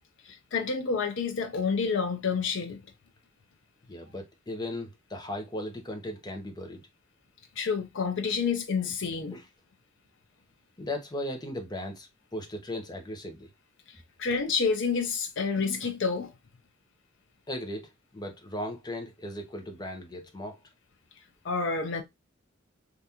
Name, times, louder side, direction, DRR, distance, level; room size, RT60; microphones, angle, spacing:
voice 1, 0.2-2.8 7.6-9.4 13.9-16.3 21.4-22.0, left 5 dB, 65° left, 0.6 m, -29 dB
voice 2, 3.9-6.8 9.3-9.4 10.8-13.5 17.5-20.6, left 1 dB, 20° left, 0.8 m, -37 dB
3.5 x 2.5 x 2.8 m
head